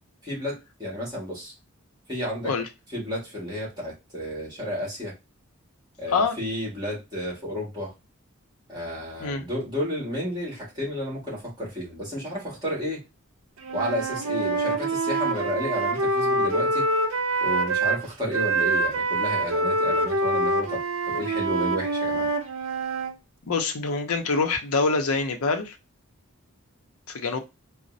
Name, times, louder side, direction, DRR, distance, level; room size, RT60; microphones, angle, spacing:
voice 1, 0.2-1.5 2.1-2.5 2.9-5.1 6.0-7.9 8.7-13.0 13.7-16.9 17.4-20.8 21.1-22.3, equal, 20° right, 1.5 m, -31 dB
Wind instrument woodwind instrument, 13.6-18.0 18.3-23.1, right 2 dB, 65° right, 0.5 m, -25 dB
voice 2, 23.4-25.7 27.1-27.4, left 4 dB, 75° left, 0.6 m, -25 dB
4.0 x 2.0 x 2.5 m
head